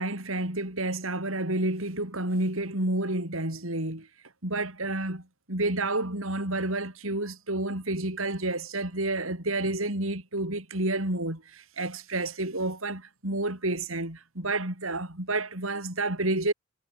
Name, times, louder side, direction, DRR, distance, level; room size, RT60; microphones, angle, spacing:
voice 1, 0.0-4.1 4.4-5.2 5.5-16.5, right 2 dB, 70° right, 5.3 m, -30 dB
head